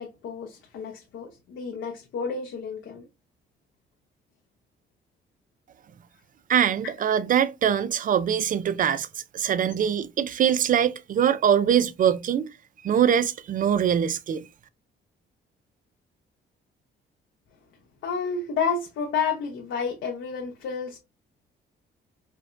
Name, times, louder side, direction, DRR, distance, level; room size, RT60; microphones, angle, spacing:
voice 1, 0.0-3.1 18.0-21.0, left 5 dB, 75° left, 0.7 m, -30 dB
voice 2, 6.5-9.1 9.3-12.4 12.8-14.4, right 9 dB, 45° right, 0.4 m, -23 dB
4.5 x 2.2 x 2.5 m
cardioid pair, 90°, 20 cm